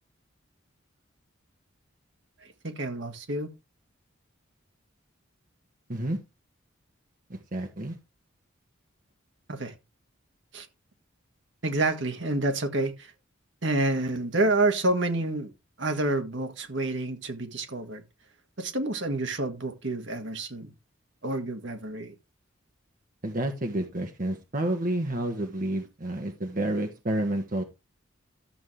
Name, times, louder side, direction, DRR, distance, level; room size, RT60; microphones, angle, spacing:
voice 1, 2.4-3.5 9.5-9.7 10.5-10.7 11.6-13.1 13.6-15.5 15.8-18.0 18.6-20.7 21.2-22.1, right 2 dB, 60° right, 1.8 m, -28 dB
voice 2, 7.3-8.0 23.2-27.6, right 1 dB, 40° right, 1.3 m, -30 dB
13.0 x 7.3 x 3.3 m
head